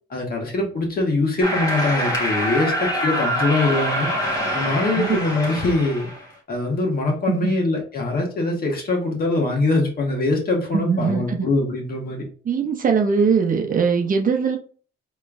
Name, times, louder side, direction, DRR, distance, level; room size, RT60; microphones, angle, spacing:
voice 1, 0.1-4.1 4.5-6.1 6.5-12.2, left 2 dB, 50° left, 0 dB, 1.7 m, -23 dB
sound 1, 1.4-6.3, equal, 20° left, 1.5 m, -25 dB
voice 2, 10.7-11.5 12.4-14.6, right 5 dB, 45° right, 3 dB, 0.7 m, -21 dB
4.3 x 3.1 x 2.6 m, 0.41 s
cardioid pair, 90°, 20 cm